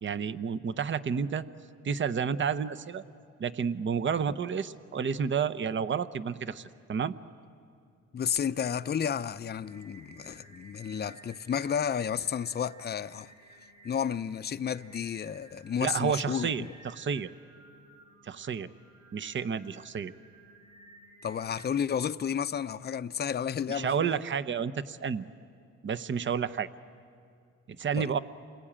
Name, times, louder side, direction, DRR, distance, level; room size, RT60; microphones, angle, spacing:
voice 1, 0.0-1.5 1.8-3.0 3.4-7.1 15.8-17.3 18.2-18.7 19.1-20.1 23.7-25.3 25.8-26.7 27.8-28.2, right 7 dB, 40° right, 0.9 m, -30 dB
voice 2, 8.1-13.3 13.8-16.7 21.2-24.2 28.0-28.1, left 8 dB, 35° left, 0.7 m, -32 dB
Singing, 8.3-21.7, right 2 dB, 60° right, 8.0 m, -56 dB
28.0 x 21.0 x 8.8 m
cardioid pair, 90°, 30 cm